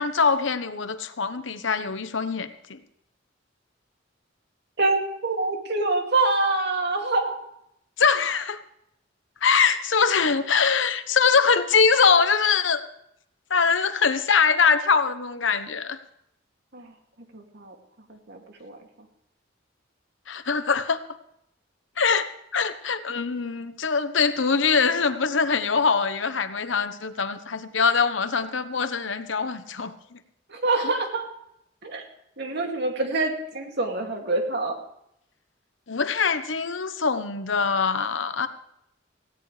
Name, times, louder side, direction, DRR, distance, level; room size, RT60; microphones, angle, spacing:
voice 1, 0.0-2.8 8.0-8.6 9.4-12.8 13.5-16.0 20.3-21.0 22.0-30.2 35.9-38.5, left 5 dB, 75° left, 11 dB, 1.1 m, -23 dB
voice 2, 4.8-7.4 16.7-16.9 17.3-17.7 18.1-18.8 30.5-31.3 31.8-32.0 32.4-34.8, right 2 dB, 60° right, 2 dB, 2.5 m, -26 dB
18.0 x 16.0 x 3.4 m, 0.76 s
head